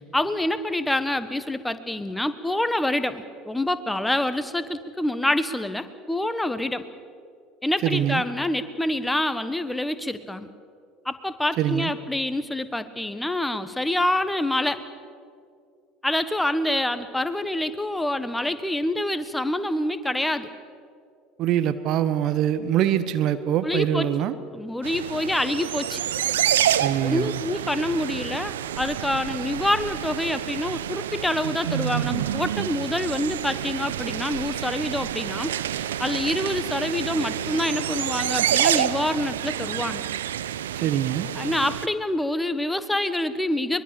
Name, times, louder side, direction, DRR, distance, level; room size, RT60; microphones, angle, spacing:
voice 1, 0.1-6.9 7.6-10.5 11.0-14.8 16.0-20.5 23.6-24.0 24.5-26.0 27.0-40.0 41.3-43.8, left 1 dB, 5° left, 12 dB, 1.3 m, -26 dB
voice 2, 7.8-8.2 11.6-11.9 21.4-24.4 26.8-27.4 40.7-41.3, right 11 dB, 50° right, 13 dB, 1.1 m, -24 dB
sound 1, 24.8-41.9, right 11 dB, 75° right, 0.7 m, -28 dB
23.5 x 22.0 x 6.8 m, 2.3 s
figure-of-eight pair, 70°, 0 cm